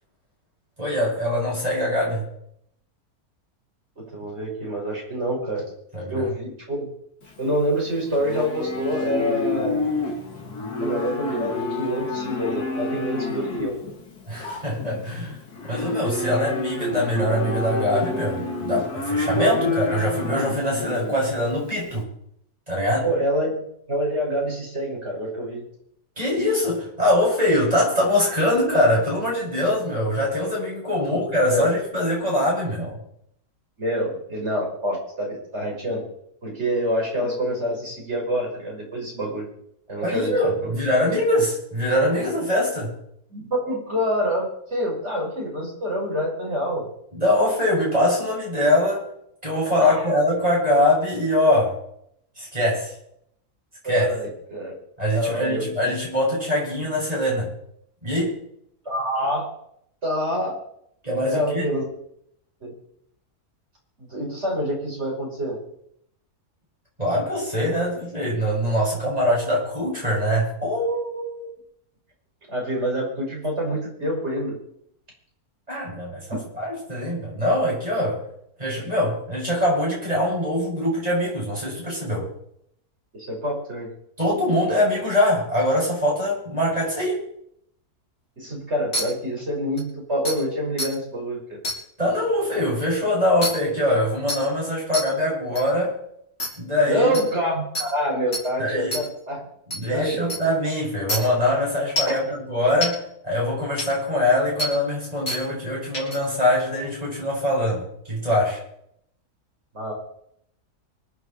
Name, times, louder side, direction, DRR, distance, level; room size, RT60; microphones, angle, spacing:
voice 1, 0.8-2.3 5.9-6.3 14.3-22.0 22.7-23.1 26.2-33.0 40.0-42.9 47.1-49.0 49.4-51.8 52.4-52.9 53.8-54.1 55.0-57.5 58.0-58.4 61.0-61.7 67.0-71.5 75.7-78.2 78.6-82.3 84.2-87.2 92.0-96.0 96.6-97.2 98.6-99.0 99.7-108.6, left 1 dB, 25° right, -4 dB, 7.1 m, -23 dB
voice 2, 4.0-5.6 6.1-6.9 7.4-9.8 10.8-13.7 17.9-18.1 19.3-19.7 23.0-25.6 31.5-31.7 33.8-36.0 36.4-39.5 39.9-40.4 40.6-40.7 43.3-46.9 49.8-50.2 53.8-54.7 55.1-55.9 58.8-59.5 60.0-60.5 61.3-61.9 62.6-62.7 64.0-65.6 72.5-74.6 83.1-83.9 88.4-91.4 96.8-99.4 99.7-100.4 102.0-102.2 109.7-109.9, equal, 45° right, -2 dB, 6.4 m, -26 dB
Livestock farm animals working animals, 7.2-22.0, left 3 dB, 85° left, 2.7 m, -29 dB
sound 1, 88.9-89.0 89.8-89.9 90.3-90.4 90.8-90.9 91.6-91.8 93.4-93.5 94.3-94.4 94.9-95.0 95.6-95.7 96.4-96.5 97.1-97.2 97.8-97.9 98.3-98.4 98.9-99.0 99.7-99.8 100.3-100.4 101.1-101.2 102.0-102.2 102.8-102.9 103.8-103.9 104.6-104.7 105.3-105.4 105.9-106.2, left 1 dB, 70° left, 5.0 m, -26 dB
24.5 x 9.3 x 4.5 m, 0.72 s
omnidirectional pair, 1.6 m